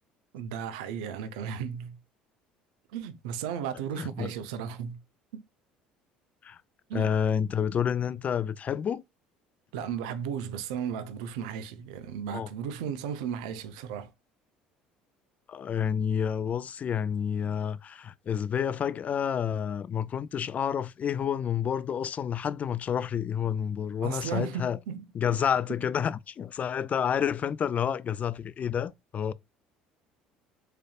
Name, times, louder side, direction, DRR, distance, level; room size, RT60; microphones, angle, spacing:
voice 1, 0.3-2.0 2.9-5.0 5.3-5.4 6.9-7.1 9.7-14.1 23.4-23.5 24.0-25.0, right 8 dB, 80° right, 0.6 m, -35 dB
voice 2, 4.0-4.3 6.4-6.6 6.9-9.0 12.3-12.5 15.5-24.8 25.1-29.3, left 8 dB, 40° left, 0.3 m, -29 dB
4.0 x 3.3 x 2.3 m
hypercardioid pair, 75°, 4 cm